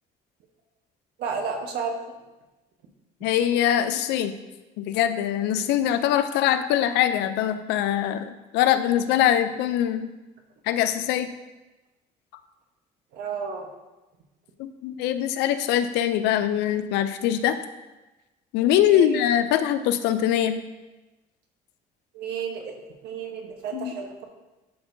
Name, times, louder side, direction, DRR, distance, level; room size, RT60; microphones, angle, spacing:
voice 1, 1.2-1.9 13.1-13.7 22.1-22.7 23.0-24.2, right 6 dB, 80° right, 3 dB, 1.1 m, -31 dB
voice 2, 3.2-4.3 4.8-10.1 10.7-11.3 14.6-17.6 18.5-20.6 23.7-23.9, left 11 dB, 90° left, 10 dB, 0.5 m, -23 dB
11.0 x 4.4 x 2.7 m, 1.1 s
cardioid pair, 110°, 17 cm